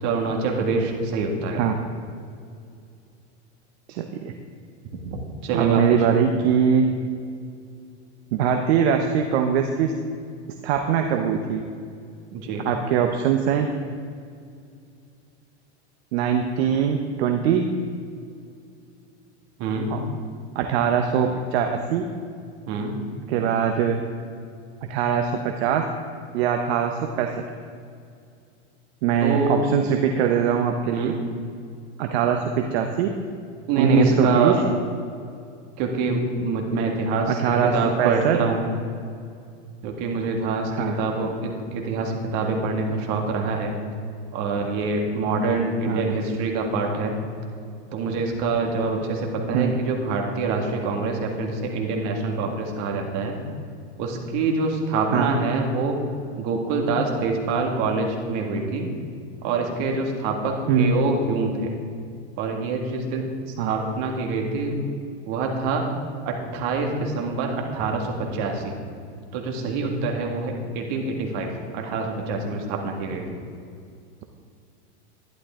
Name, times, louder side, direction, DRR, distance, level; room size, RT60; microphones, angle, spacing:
voice 1, 0.0-1.7 5.1-6.0 12.3-12.7 19.6-19.9 22.7-23.0 29.2-29.6 30.9-31.2 33.7-34.7 35.8-38.7 39.8-43.7 44.3-47.1 47.9-53.4 54.0-56.0 56.4-58.9 59.4-61.7 62.4-63.3 63.6-64.8 65.3-65.8 66.2-68.7 69.3-73.4, right 3 dB, 50° right, 2 dB, 2.1 m, -25 dB
voice 2, 3.9-4.3 5.5-6.8 8.3-9.9 10.6-11.6 12.6-13.7 16.1-17.6 19.9-20.1 20.5-22.1 23.3-24.0 24.9-25.8 26.3-27.4 29.0-31.1 32.0-33.1 33.8-34.5 37.3-37.7 38.0-38.4 40.7-41.0 45.8-46.1 49.5-49.7 55.1-55.3 60.7-60.9 63.6-63.7, right 8 dB, 70° right, 4 dB, 1.0 m, -22 dB
12.0 x 11.0 x 3.7 m, 2.3 s
supercardioid pair, 125°, 34 cm